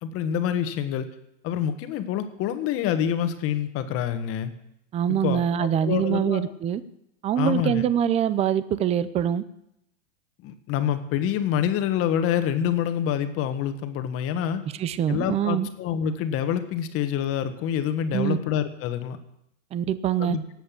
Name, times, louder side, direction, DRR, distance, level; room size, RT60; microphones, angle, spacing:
voice 1, 0.0-1.1 1.4-4.5 5.1-6.5 7.4-7.8 10.4-14.6 15.1-19.2 20.2-20.4, left 9 dB, 35° left, 9 dB, 1.5 m, -26 dB
voice 2, 4.9-6.8 7.2-9.4 14.8-15.7 18.1-18.4 19.7-20.4, right 9 dB, 15° right, 15 dB, 0.5 m, -24 dB
18.0 x 8.0 x 7.5 m, 0.80 s
hypercardioid pair, 135°, 37 cm